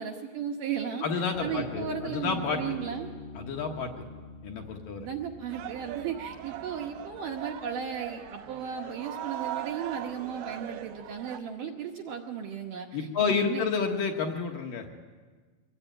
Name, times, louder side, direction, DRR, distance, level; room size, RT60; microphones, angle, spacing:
voice 1, 0.0-3.1 5.0-14.0, right 7 dB, 65° right, 2 dB, 2.2 m, -35 dB
voice 2, 1.0-2.8 3.3-3.9 4.4-5.1 12.9-14.9, left 5 dB, 60° left, 3 dB, 2.6 m, -30 dB
sound 1, 1.3-8.0, left 3 dB, 80° left, 5.7 m, -45 dB
sound 2, 5.5-11.4, right 11 dB, 90° right, 3.4 m, -39 dB
24.0 x 20.5 x 9.1 m, 1.4 s
omnidirectional pair, 5.0 m